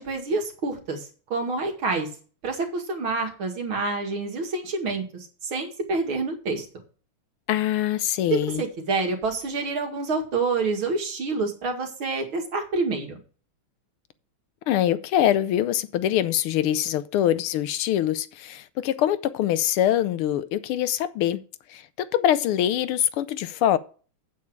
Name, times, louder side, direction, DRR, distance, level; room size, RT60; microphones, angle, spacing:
voice 1, 0.0-2.1 2.4-6.7 8.3-13.2, right 3 dB, 70° right, 2.9 m, -27 dB
voice 2, 7.5-8.6 14.7-21.4 21.7-23.8, left 11 dB, 85° left, 1.6 m, -24 dB
8.6 x 8.6 x 4.7 m
omnidirectional pair, 2.4 m